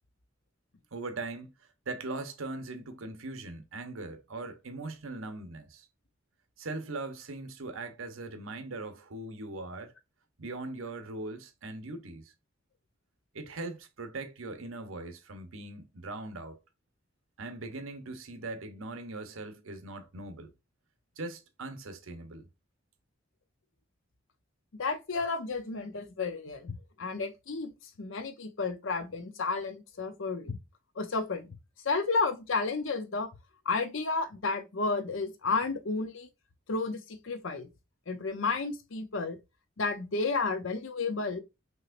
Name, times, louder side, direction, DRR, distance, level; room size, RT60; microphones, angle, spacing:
voice 1, 0.9-5.9 6.6-9.9 10.4-12.3 13.3-16.6 17.4-20.5 21.2-22.5, right 2 dB, 85° right, 1.0 m, -40 dB
voice 2, 24.8-27.7 28.0-30.6 31.0-31.5 31.8-33.3 33.7-36.3 36.7-37.7 38.1-39.4 39.8-41.4, left 4 dB, 65° left, 0.7 m, -32 dB
6.1 x 3.0 x 2.5 m
head